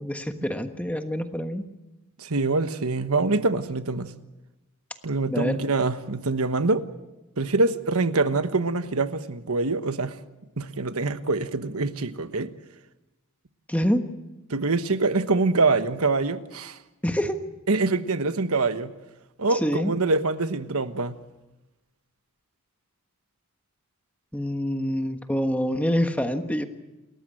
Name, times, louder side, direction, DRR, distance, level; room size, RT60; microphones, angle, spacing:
voice 1, 0.0-1.6 5.3-5.6 13.7-14.0 17.0-17.4 19.5-19.9 24.3-26.7, equal, 5° left, 1.3 m, -26 dB
voice 2, 2.2-4.1 5.0-6.8 7.4-10.2 10.6-12.5 14.5-16.8 17.7-18.9 19.4-21.2, right 3 dB, 75° right, 1.3 m, -25 dB
29.0 x 14.0 x 8.9 m
head